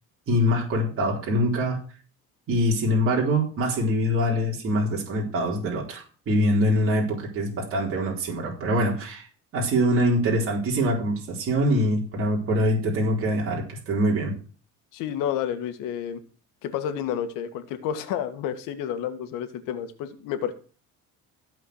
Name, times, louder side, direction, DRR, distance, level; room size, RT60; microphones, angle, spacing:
voice 1, 0.3-1.8 2.5-9.2 9.5-14.4, equal, 45° right, -2 dB, 4.1 m, -24 dB
voice 2, 14.9-16.2 16.6-20.5, left 9 dB, 80° left, 9 dB, 2.0 m, -30 dB
15.5 x 5.2 x 8.0 m, 0.38 s
cardioid pair, 140°, 32 cm